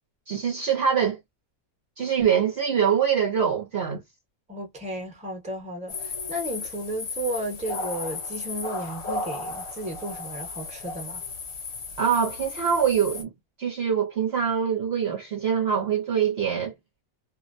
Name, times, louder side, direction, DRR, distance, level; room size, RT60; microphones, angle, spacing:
voice 1, 0.3-1.2 2.0-4.0 12.0-13.3 13.6-16.7, right 7 dB, 55° right, 0.8 m, -24 dB
voice 2, 4.5-11.2, right 1 dB, 5° right, 0.7 m, -34 dB
sound 1, 5.9-13.2, left 3 dB, 55° left, 1.0 m, -35 dB
2.5 x 2.1 x 2.5 m
omnidirectional pair, 1.5 m